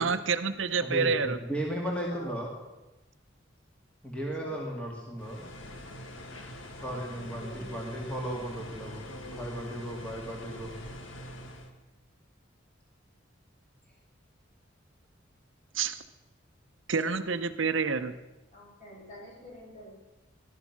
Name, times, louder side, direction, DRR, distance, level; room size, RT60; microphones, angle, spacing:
voice 1, 0.0-1.4 15.7-16.0 16.9-18.1, right 5 dB, 70° right, 10 dB, 0.9 m, -28 dB
voice 2, 0.8-2.5 4.0-5.4 6.8-9.0 9.3-10.7, equal, 5° left, -2 dB, 2.1 m, -35 dB
sound 1, 5.2-11.7, equal, 75° left, 1.9 m, -43 dB
voice 3, 6.8-8.1 18.5-19.9, equal, 40° left, -3 dB, 6.4 m, -47 dB
17.5 x 12.5 x 6.0 m, 1.1 s
head